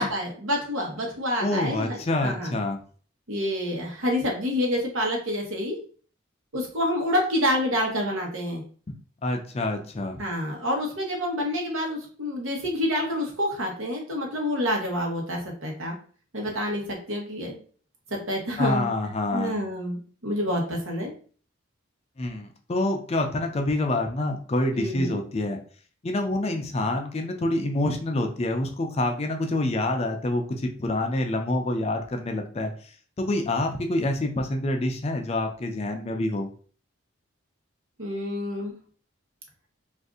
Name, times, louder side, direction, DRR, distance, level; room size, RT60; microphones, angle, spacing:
voice 1, 0.0-2.5 3.3-5.8 6.5-8.6 10.2-15.9 16.3-17.5 18.1-18.9 19.3-21.1 24.7-25.2 38.0-38.7, equal, 80° right, 0 dB, 1.1 m, -28 dB
voice 2, 1.4-2.8 8.9-9.0 9.2-10.2 18.6-19.5 22.2-25.6 26.0-32.7 33.2-36.5, left 1 dB, 30° left, 4 dB, 0.4 m, -27 dB
2.6 x 2.5 x 3.5 m, 0.42 s
head